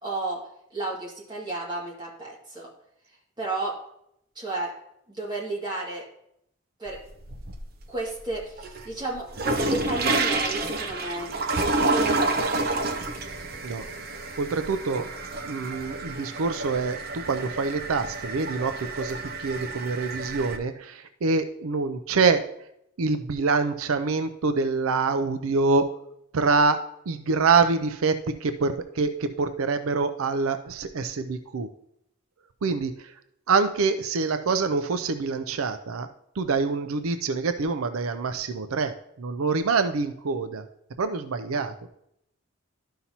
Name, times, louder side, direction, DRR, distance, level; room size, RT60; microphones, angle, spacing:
voice 1, 0.0-2.7 3.4-3.8 4.4-4.7 5.1-6.1 6.8-7.0 7.9-11.3 11.6-12.9, right 2 dB, 20° right, -4 dB, 2.1 m, -33 dB
sound 1, 6.9-7.8 8.2-20.6, right 2 dB, 45° right, 0.7 m, -29 dB
voice 2, 14.4-15.1 15.4-22.4 23.0-25.9 26.3-26.8 27.1-31.7 32.6-33.1 33.5-36.1 36.4-40.6 41.0-41.7, right 4 dB, 85° right, 9 dB, 0.5 m, -25 dB
12.5 x 5.6 x 2.8 m, 0.76 s
head